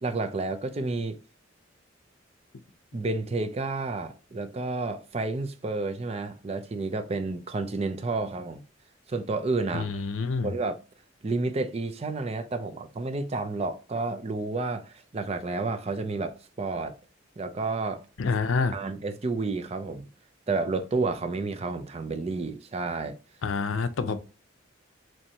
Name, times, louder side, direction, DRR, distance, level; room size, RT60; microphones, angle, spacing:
voice 1, 0.0-1.2 2.9-8.6 9.1-9.9 10.4-10.8 11.2-17.0 17.4-18.0 18.7-20.1 20.5-23.2, right 3 dB, 30° right, 0.5 m, -30 dB
voice 2, 9.7-10.5 18.2-18.7 23.4-24.2, left 4 dB, 85° left, 0.5 m, -27 dB
4.5 x 3.1 x 2.8 m
head